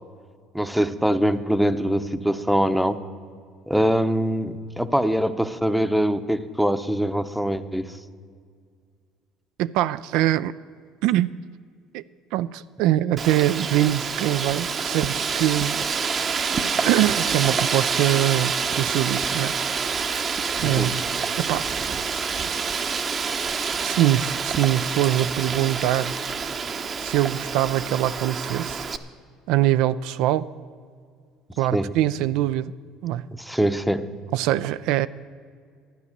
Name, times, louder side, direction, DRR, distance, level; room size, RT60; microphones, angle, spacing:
voice 1, 0.5-3.0 3.7-7.9 20.6-20.9 31.7-31.9 33.3-34.1, equal, ahead, 0.7 m, -23 dB
voice 2, 9.6-10.5 11.0-11.3 11.9-12.0 12.3-15.8 16.2-16.4 16.8-19.6 20.6-21.0 21.4-21.7 23.8-26.1 27.0-28.9 29.5-30.5 31.6-32.7 33.0-33.3 34.3-35.1, right 14 dB, 75° right, 0.3 m, -23 dB
Wind, 13.2-29.0, right 5 dB, 40° right, 0.8 m, -27 dB
12.5 x 9.8 x 6.5 m
supercardioid pair, 90°, 0 cm